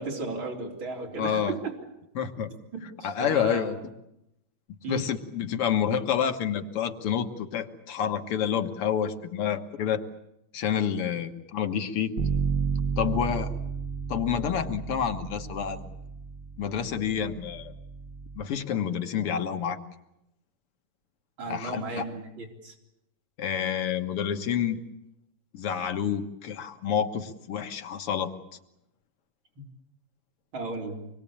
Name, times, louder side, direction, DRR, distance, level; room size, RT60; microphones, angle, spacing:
voice 1, 0.0-1.8 2.7-3.8 4.8-5.0 21.4-22.7 29.6-29.7 30.5-31.0, right 3 dB, 65° right, 0 dB, 4.6 m, -35 dB
voice 2, 1.2-1.6 2.2-2.5 3.0-3.8 4.9-10.0 10.5-12.2 13.0-13.5 14.1-15.9 16.6-17.7 18.4-19.8 21.5-22.0 23.4-24.8 25.5-28.3, left 8 dB, 90° left, 7 dB, 2.4 m, -28 dB
Bass guitar, 12.2-18.4, right 6 dB, 45° right, 1.5 m, -32 dB
25.5 x 21.5 x 8.7 m, 0.85 s
omnidirectional pair, 2.4 m